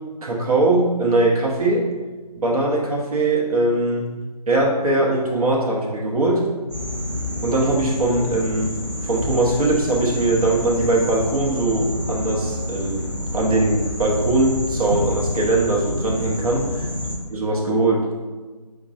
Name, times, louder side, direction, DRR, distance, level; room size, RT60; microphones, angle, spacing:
voice 1, 0.2-1.8 2.3-4.1 4.5-6.4 7.4-8.7 9.0-13.1 13.3-16.7 17.3-18.0, right 2 dB, 60° right, -3 dB, 0.8 m, -20 dB
sound 1, 6.7-17.2, left 1 dB, 5° right, 0.7 m, -28 dB
4.9 x 2.2 x 2.5 m, 1.3 s
figure-of-eight pair, 160°, 21 cm